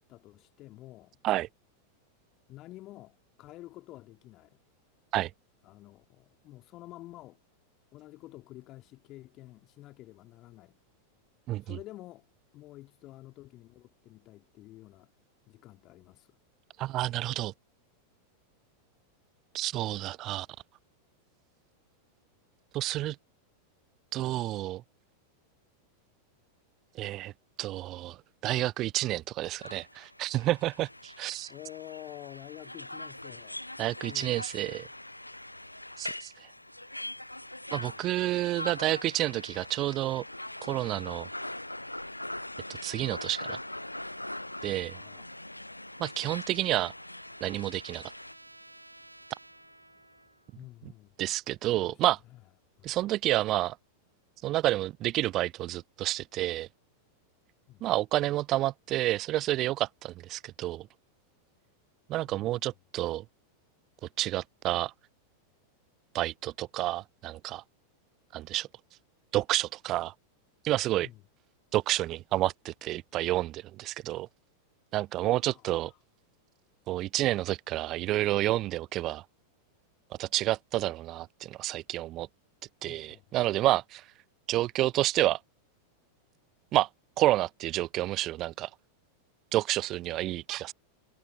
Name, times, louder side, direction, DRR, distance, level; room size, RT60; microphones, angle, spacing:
voice 1, 0.1-1.2 2.5-4.6 5.6-7.4 7.9-10.8 11.6-12.3 12.5-15.1 15.5-16.4 31.5-33.6 34.0-34.4 37.7-38.4 44.9-45.4 46.2-46.4 50.5-51.2 51.8-52.0 52.3-52.4 52.8-53.0 57.7-57.9 62.2-62.6 71.0-71.2 75.4-76.0 82.8-83.4, left 16 dB, 35° left, 2.6 m, -49 dB
voice 2, 11.5-11.8 16.8-17.5 19.5-20.5 22.7-23.2 24.1-24.8 27.0-27.3 27.6-31.5 33.8-34.9 36.0-36.3 37.7-40.2 40.6-41.3 42.8-43.6 44.6-45.0 46.0-46.9 47.4-48.0 51.2-52.2 52.8-53.8 54.4-56.7 57.8-60.9 62.1-63.2 64.2-64.9 66.1-67.6 68.3-68.7 69.3-70.1 70.6-71.1 71.7-74.3 74.9-75.9 76.9-79.2 80.2-82.3 82.8-84.0 84.5-85.4 86.7-86.9 87.2-88.7 89.5-90.7, right 15 dB, 35° right, 0.3 m, -29 dB
sound 1, 29.6-48.3, left 1 dB, 85° left, 0.4 m, -42 dB
Trumpet, 45.4-50.6, right 1 dB, 85° right, 0.6 m, -55 dB
figure-of-eight pair, 90°, 0 cm